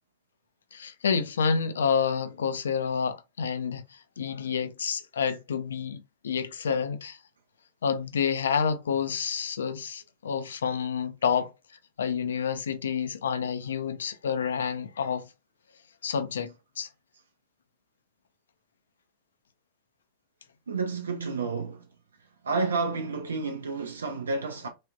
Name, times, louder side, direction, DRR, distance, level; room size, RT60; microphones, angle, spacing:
voice 1, 0.7-7.2 7.8-15.3 16.0-16.9, left 6 dB, 65° left, 0.4 m, -29 dB
voice 2, 20.7-21.9 22.4-24.7, right 4 dB, 70° right, 0.4 m, -30 dB
3.3 x 2.3 x 2.5 m
figure-of-eight pair, 90°, 0 cm